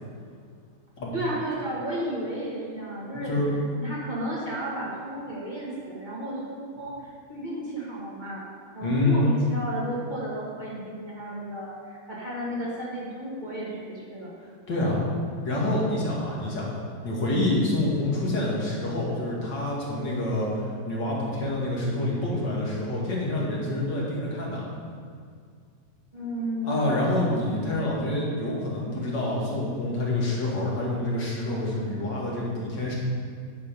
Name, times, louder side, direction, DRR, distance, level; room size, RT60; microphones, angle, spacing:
voice 1, 1.1-3.3 3.7-8.4 8.7-14.3 26.1-26.9, right 1 dB, 25° right, -7 dB, 1.9 m, -33 dB
voice 2, 8.8-9.3 14.7-15.0 15.4-16.7 17.0-24.6 26.6-32.9, left 1 dB, 80° left, -4 dB, 2.7 m, -27 dB
9.9 x 6.7 x 5.2 m, 2.1 s
omnidirectional pair, 1.9 m